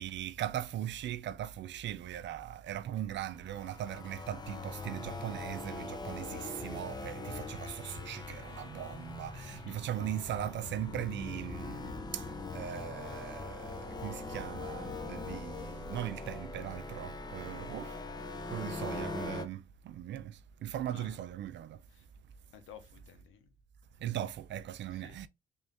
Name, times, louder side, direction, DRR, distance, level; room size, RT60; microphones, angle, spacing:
voice 1, 0.0-12.2 12.5-17.9 18.5-21.8 24.0-25.3, right 11 dB, 65° right, 0.5 m, -39 dB
sound 1, 3.2-19.5, left 3 dB, 20° left, 0.6 m, -42 dB
voice 2, 9.5-9.8 20.9-21.2 21.9-22.1 22.5-23.5 24.9-25.3, left 9 dB, 85° left, 0.9 m, -55 dB
3.5 x 2.8 x 3.5 m
cardioid pair, 90°, 20 cm